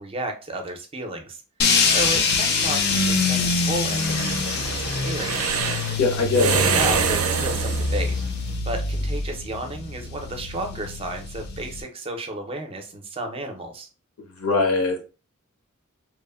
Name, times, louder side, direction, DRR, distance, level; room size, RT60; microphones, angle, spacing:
voice 1, 0.0-1.4 1.9-4.8 5.0-5.6 6.6-8.3 8.6-13.9, right 1 dB, 25° right, 4 dB, 0.4 m, -32 dB
sound 1, 1.6-11.8, left 4 dB, 50° left, 0.4 m, -25 dB
sound 2, 2.6-8.5, right 6 dB, 80° right, 0.4 m, -26 dB
voice 2, 6.0-6.6 14.4-15.0, left 3 dB, 85° left, 2 dB, 0.8 m, -21 dB
3.0 x 2.0 x 2.2 m, 0.34 s
head